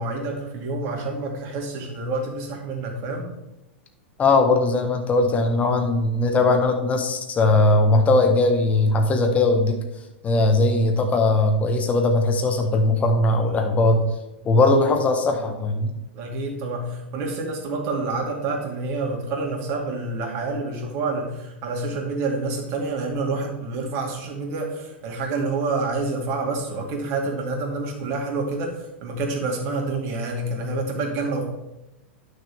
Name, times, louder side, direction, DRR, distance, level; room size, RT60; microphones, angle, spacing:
voice 1, 0.0-3.3 14.7-14.8 16.1-31.5, right 3 dB, 45° right, 1 dB, 2.4 m, -28 dB
voice 2, 4.2-9.8 10.2-14.0 14.4-15.9, left 2 dB, 25° left, 4 dB, 1.3 m, -19 dB
11.0 x 6.4 x 3.5 m, 0.95 s
hypercardioid pair, 100°, 6 cm